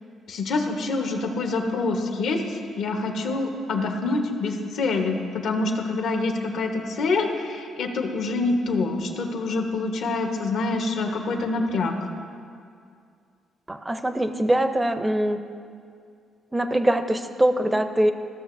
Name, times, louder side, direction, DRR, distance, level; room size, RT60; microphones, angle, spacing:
voice 1, 0.3-12.1, left 3 dB, 75° left, 3 dB, 0.9 m, -26 dB
voice 2, 13.7-15.4 16.5-18.1, right 1 dB, 15° right, 9 dB, 0.5 m, -23 dB
14.0 x 6.5 x 2.6 m, 2.3 s
cardioid pair, 90°, 0 cm